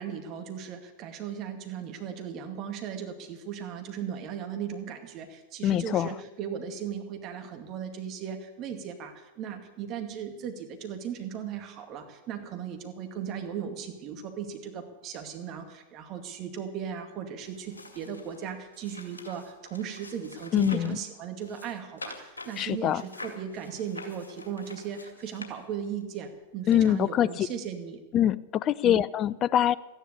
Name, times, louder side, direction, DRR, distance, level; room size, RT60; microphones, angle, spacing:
voice 1, 0.0-28.0 28.8-29.0, right 8 dB, 40° right, 5 dB, 2.3 m, -37 dB
voice 2, 5.6-6.1 20.5-21.0 22.6-23.0 26.7-27.5 28.1-29.7, left 11 dB, 35° left, 19 dB, 0.4 m, -24 dB
sound 1, 17.4-21.0 21.4-26.0 26.7-26.8, left 2 dB, 80° left, 2.2 m, -46 dB
13.5 x 10.5 x 8.2 m, 1.1 s
figure-of-eight pair, 95°, 0 cm